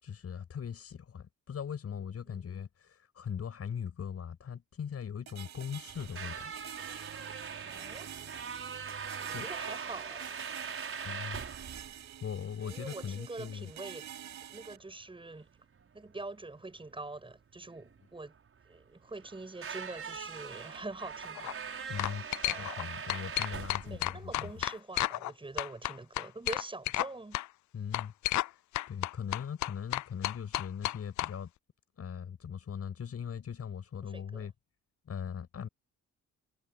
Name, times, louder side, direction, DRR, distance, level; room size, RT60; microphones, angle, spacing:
voice 1, 0.0-6.5 9.3-9.5 11.0-11.4 12.2-13.7 21.9-24.5 27.7-28.1 28.5-28.6 28.9-31.5 32.0-34.5 35.1-35.7, left 7 dB, 55° left, 7.2 m, -40 dB
sound 1, 5.3-14.8, right 10 dB, 65° right, 6.0 m, -48 dB
sound 2, 5.9-24.8, right 6 dB, 45° right, 6.4 m, -42 dB
voice 2, 7.6-8.1 9.2-10.5 12.6-14.1 14.5-15.5 15.9-18.3 18.6-21.5 22.4-22.7 23.8-27.4 34.0-34.5, right 2 dB, 15° right, 7.3 m, -44 dB
sound 3, 21.2-21.5 22.0-22.8 23.1-25.3 25.6-27.1 27.3-27.5 27.9-28.5 28.7-31.3, left 17 dB, 70° left, 0.5 m, -32 dB
cardioid pair, 90°, 30 cm